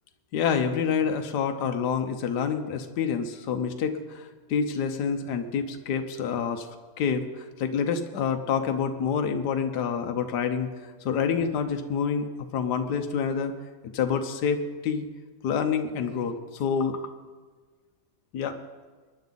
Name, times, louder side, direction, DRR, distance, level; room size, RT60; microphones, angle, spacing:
voice 1, 0.3-6.7 7.0-12.3 12.5-13.5 13.9-15.1 15.4-17.0 18.3-18.6, left 6 dB, 75° left, 6 dB, 1.5 m, -27 dB
21.5 x 10.5 x 4.0 m, 1.4 s
omnidirectional pair, 1.8 m